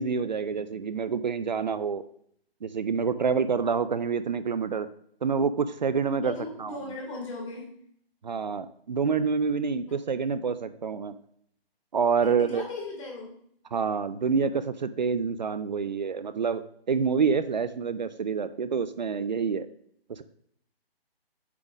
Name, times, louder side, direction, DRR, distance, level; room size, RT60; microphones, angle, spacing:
voice 1, 0.0-2.0 2.6-4.9 5.2-6.3 6.6-6.7 8.2-11.2 11.9-12.6 13.7-16.6 16.9-19.7 20.1-20.2, right 5 dB, 45° right, 13 dB, 0.4 m, -27 dB
voice 2, 6.2-7.8 9.9-10.0 12.2-13.3, left 2 dB, 30° left, -2 dB, 2.6 m, -38 dB
8.3 x 3.8 x 4.9 m, 0.65 s
figure-of-eight pair, 150°, 31 cm